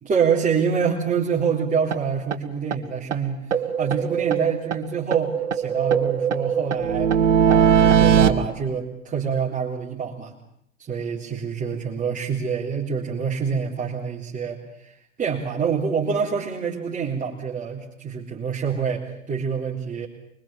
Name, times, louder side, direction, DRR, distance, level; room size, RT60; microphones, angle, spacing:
voice 1, 0.0-10.3 10.8-20.1, right 6 dB, 20° right, -4 dB, 3.8 m, -26 dB
sound 1, 1.9-2.0 2.3-2.4 2.7-2.8 3.1-3.2 3.5-4.8 5.1-8.3, right 8 dB, 70° right, 1.7 m, -20 dB
25.0 x 22.5 x 7.4 m, 0.75 s
figure-of-eight pair, 80°, 37 cm